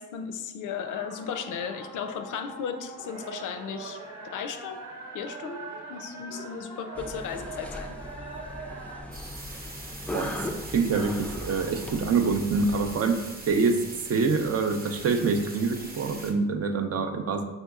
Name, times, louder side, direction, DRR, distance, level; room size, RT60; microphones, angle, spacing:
voice 1, 0.0-4.0 4.2-4.8 5.1-8.0, left 7 dB, 65° left, 8 dB, 0.4 m, -35 dB
sound 1, 0.9-9.0, right 2 dB, 65° right, 1.0 m, -42 dB
sound 2, 7.0-13.0, left 1 dB, 5° left, 0.4 m, -38 dB
sound 3, 9.1-16.3, right 2 dB, 25° right, 0.9 m, -42 dB
voice 2, 10.7-17.4, right 4 dB, 50° right, 6 dB, 0.5 m, -26 dB
5.3 x 2.8 x 2.3 m, 1.1 s
cardioid pair, 70°, 33 cm